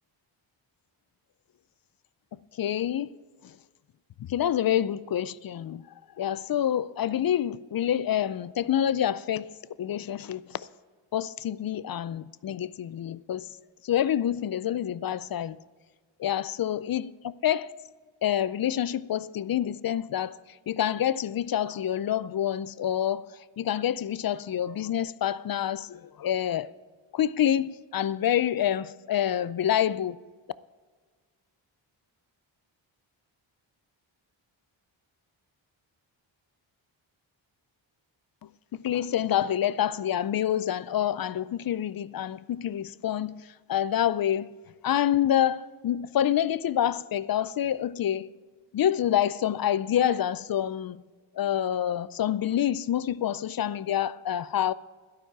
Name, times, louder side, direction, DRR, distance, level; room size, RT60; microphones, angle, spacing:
voice 1, 2.6-3.1 3.4-3.5 4.2-5.8 6.2-9.5 9.8-10.7 11.1-13.5 13.8-15.6 16.2-17.7 18.2-20.4 20.7-23.3 23.6-26.7 27.1-30.2 38.7-43.4 43.7-44.5 44.8-48.3 48.7-51.0 51.4-54.7, left 10 dB, 50° left, 0.5 m, -27 dB
12.0 x 12.0 x 4.7 m
cardioid pair, 90°, 46 cm